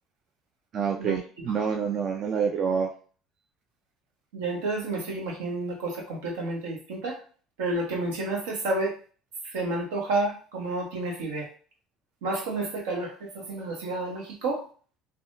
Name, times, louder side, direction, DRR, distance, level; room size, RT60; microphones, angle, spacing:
voice 1, 0.7-2.9, right 6 dB, 50° right, 3 dB, 0.4 m, -27 dB
voice 2, 4.3-7.2 7.6-8.9 9.5-11.5 12.2-14.6, right 2 dB, 80° right, 0 dB, 1.0 m, -30 dB
3.4 x 2.2 x 2.6 m, 0.40 s
hypercardioid pair, 80°, 0 cm